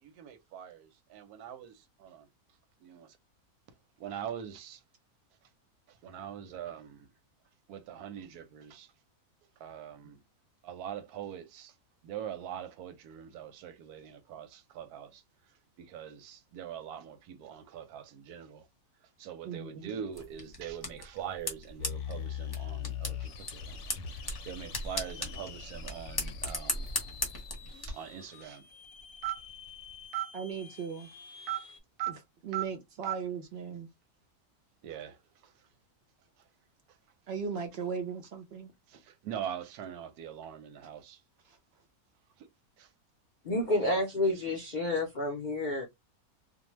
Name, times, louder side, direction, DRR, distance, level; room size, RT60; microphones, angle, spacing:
voice 1, 0.0-2.3 2.8-3.2 4.0-4.8 5.9-7.1 7.7-8.9 9.6-10.2 10.6-11.8 12.0-18.7 19.0-26.9 27.7-28.7 29.2-29.4 30.1-30.3 31.5-31.7 32.0-32.2 32.5-32.7 33.0-33.2 34.8-35.6 36.9-37.0 38.9-41.2 42.4-42.5 42.8-42.9 43.8-44.6, right 10 dB, 90° right, 1.1 m, -42 dB
voice 2, 19.4-19.9 30.3-31.1 32.4-33.9 37.3-38.7 41.5-41.6, right 6 dB, 70° right, 0.6 m, -37 dB
sound 1, 20.1-27.9, left 2 dB, 25° left, 0.5 m, -38 dB
sound 2, 21.8-31.8, left 7 dB, 65° left, 0.8 m, -43 dB
voice 3, 43.4-45.9, left 1 dB, 85° left, 0.4 m, -29 dB
2.6 x 2.1 x 3.0 m
omnidirectional pair, 1.6 m